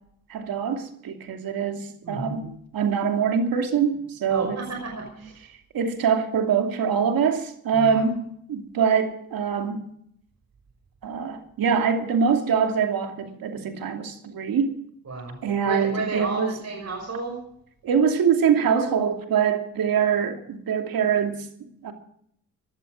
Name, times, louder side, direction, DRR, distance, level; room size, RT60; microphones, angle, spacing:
voice 1, 0.3-2.4 2.7-4.6 5.7-9.8 11.0-14.8 15.4-16.6 17.8-21.5 21.8-21.9, right 7 dB, 80° right, 5 dB, 2.8 m, -24 dB
voice 2, 2.0-2.5 4.3-5.4 7.7-8.0 15.1-15.4 15.6-17.4, right 3 dB, 50° right, 1 dB, 5.7 m, -32 dB
17.0 x 12.0 x 6.4 m, 0.68 s
cardioid pair, 65°, 35 cm